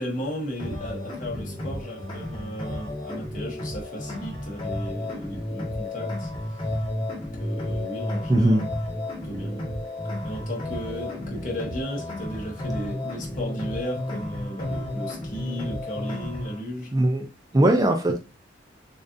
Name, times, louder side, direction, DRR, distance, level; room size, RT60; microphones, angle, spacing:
voice 1, 0.0-6.3 7.1-8.6 9.2-9.7 10.2-16.9, equal, 45° left, -2 dB, 1.5 m, -35 dB
sound 1, 0.6-16.6, left 1 dB, 30° left, 1.5 m, -32 dB
voice 2, 8.3-8.6 16.9-17.3 17.5-18.2, right 1 dB, 20° right, 4 dB, 0.5 m, -20 dB
6.6 x 2.6 x 2.6 m, 0.30 s
head